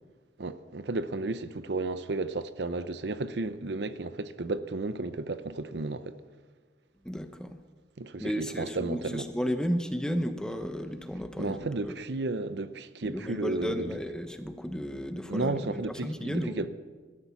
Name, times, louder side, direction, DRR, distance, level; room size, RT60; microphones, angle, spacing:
voice 1, 0.4-6.2 8.0-9.3 11.4-14.0 15.3-16.7, right 2 dB, 70° right, 0.7 m, -33 dB
voice 2, 7.0-7.6 8.2-12.0 13.0-16.7, equal, 5° left, 0.8 m, -33 dB
19.5 x 12.5 x 5.9 m
head